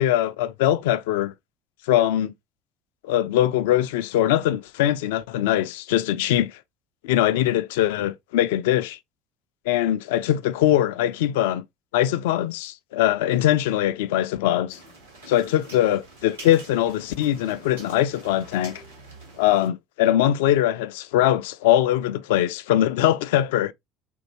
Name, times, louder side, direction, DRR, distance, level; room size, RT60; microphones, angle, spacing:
voice 1, 0.0-1.3 1.9-2.3 3.0-6.6 7.0-9.0 9.7-11.6 11.9-14.8 15.3-18.8 19.4-23.7, left 12 dB, 70° left, 0.3 m, -22 dB
sound 1, 14.7-19.7, right 2 dB, 85° right, 1.4 m, -45 dB
4.4 x 2.6 x 2.9 m
figure-of-eight pair, 60°, 0 cm